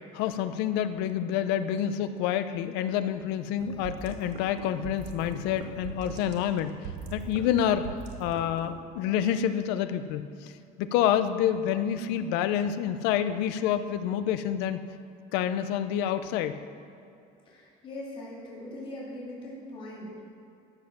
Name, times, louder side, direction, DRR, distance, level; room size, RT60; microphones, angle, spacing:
voice 1, 0.1-7.9 8.2-10.5 10.8-14.8 15.3-16.6, left 10 dB, 80° left, 11 dB, 0.7 m, -28 dB
sound 1, 3.6-8.7, right 6 dB, 70° right, 1.4 m, -41 dB
voice 2, 17.5-20.2, left 1 dB, 30° left, -6 dB, 2.8 m, -41 dB
14.0 x 7.5 x 6.0 m, 2.6 s
cardioid pair, 180°, 17 cm